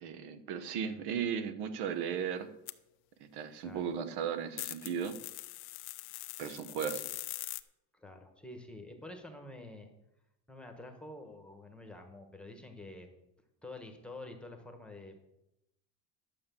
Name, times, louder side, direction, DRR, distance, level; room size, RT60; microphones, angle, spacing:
voice 1, 0.0-2.5 3.2-5.2 6.4-7.0, right 7 dB, 65° right, 11 dB, 1.1 m, -36 dB
sound 1, 2.7-2.8 4.6-7.6, left 19 dB, 60° left, 0.7 m, -42 dB
voice 2, 7.9-9.9 10.5-13.1 13.6-15.2, left 2 dB, ahead, 4 dB, 1.1 m, -48 dB
11.5 x 6.9 x 6.9 m, 0.87 s
cardioid pair, 175°, 42 cm